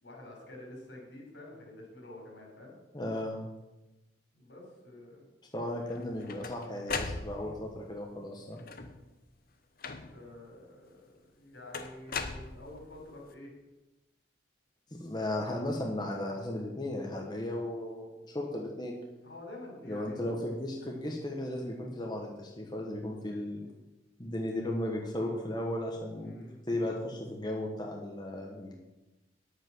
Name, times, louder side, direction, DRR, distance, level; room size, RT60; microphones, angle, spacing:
voice 1, 0.0-2.8 4.3-5.3 10.0-13.5 19.2-20.2 26.2-26.6, left 1 dB, 75° left, -1 dB, 4.6 m, -48 dB
voice 2, 2.9-3.4 5.5-8.6 14.9-18.9 19.8-23.6 24.2-28.7, left 1 dB, 25° left, 0 dB, 1.2 m, -35 dB
sound 1, 5.9-7.7 8.6-9.1 9.8-10.4 11.7-13.0, left 4 dB, 50° left, 0.9 m, -38 dB
10.0 x 8.3 x 6.1 m, 1.0 s
head